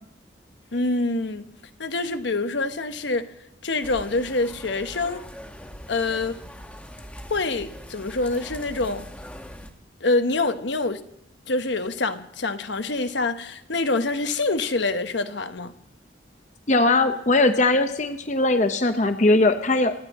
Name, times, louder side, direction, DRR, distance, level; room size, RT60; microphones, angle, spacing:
voice 1, 0.7-1.5 1.8-3.3 3.6-5.2 5.9-6.4 7.3-9.1 10.0-11.0 11.5-15.7, left 3 dB, 75° left, 1.0 m, -26 dB
sound 1, 3.8-9.7, equal, 5° left, 1.0 m, -41 dB
voice 2, 16.7-19.9, left 2 dB, 40° left, 0.7 m, -20 dB
27.0 x 10.0 x 4.2 m
head